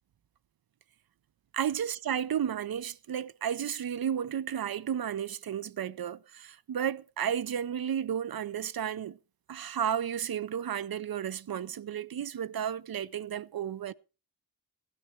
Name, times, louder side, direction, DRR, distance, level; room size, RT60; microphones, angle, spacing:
voice 1, 1.5-9.2 9.5-13.9, right 9 dB, 65° right, 0.5 m, -33 dB
15.5 x 10.0 x 4.3 m
wide cardioid pair, 110°, 39 cm